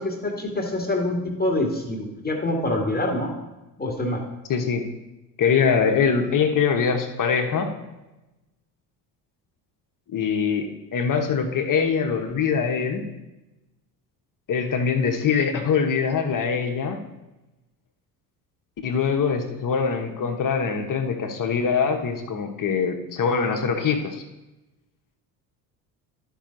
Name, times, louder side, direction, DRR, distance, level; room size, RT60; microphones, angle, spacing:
voice 1, 0.0-3.3 3.8-4.2, left 1 dB, 20° left, 1 dB, 1.9 m, -25 dB
voice 2, 4.5-4.8 5.4-7.7 10.1-13.1 14.5-17.0 18.8-24.2, left 6 dB, 40° left, 5 dB, 1.2 m, -23 dB
11.5 x 5.7 x 3.9 m, 1.0 s
hypercardioid pair, 60°, 50 cm